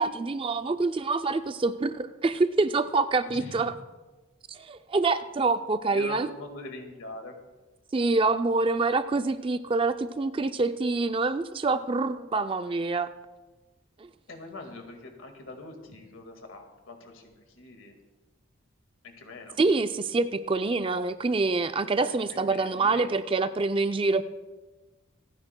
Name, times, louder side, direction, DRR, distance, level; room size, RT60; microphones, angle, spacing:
voice 1, 0.0-3.7 4.5-6.3 7.9-13.1 14.0-14.1 19.6-24.2, right 3 dB, 25° right, 11 dB, 0.3 m, -26 dB
voice 2, 3.2-3.7 5.9-7.4 14.3-18.0 19.0-19.6 22.0-23.1, left 2 dB, 75° left, 4 dB, 1.9 m, -43 dB
26.5 x 9.6 x 2.2 m, 1.2 s
head